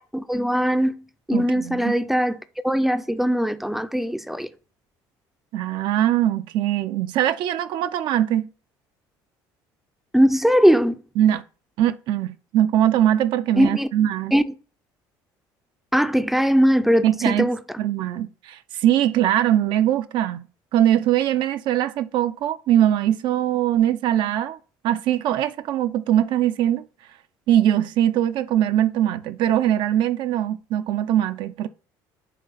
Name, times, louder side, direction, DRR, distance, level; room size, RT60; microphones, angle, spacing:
voice 1, 0.1-1.0 1.3-4.5 10.1-11.0 13.6-13.9 14.3-14.5 15.9-17.6, equal, 5° right, 0.4 m, -20 dB
voice 2, 1.3-1.9 5.5-8.5 11.2-11.4 11.8-14.3 17.0-17.5 17.8-20.4 20.7-24.6 24.8-26.8 27.5-31.7, right 11 dB, 65° right, 0.4 m, -21 dB
9.2 x 3.3 x 4.0 m
cardioid pair, 110°, 9 cm